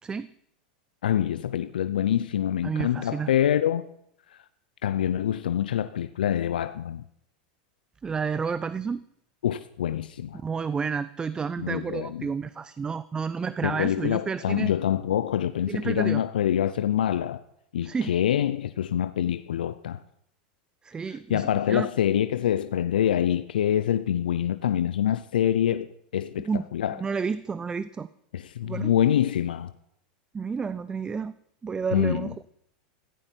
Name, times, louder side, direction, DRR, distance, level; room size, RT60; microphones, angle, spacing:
voice 1, 1.0-3.9 4.8-7.0 9.4-10.4 11.6-12.3 13.6-17.4 17.7-20.0 21.3-25.9 26.1-27.0 28.3-29.7 31.9-32.3, left 10 dB, 90° left, 0.6 m, -25 dB
voice 2, 2.6-3.3 8.0-9.0 10.4-14.7 15.7-16.2 17.8-18.1 20.8-21.9 26.4-26.7 27.0-28.1 28.6-28.9 30.3-31.3 31.6-32.3, right 5 dB, 15° right, 0.5 m, -30 dB
16.0 x 15.5 x 4.5 m
hypercardioid pair, 120°, 5 cm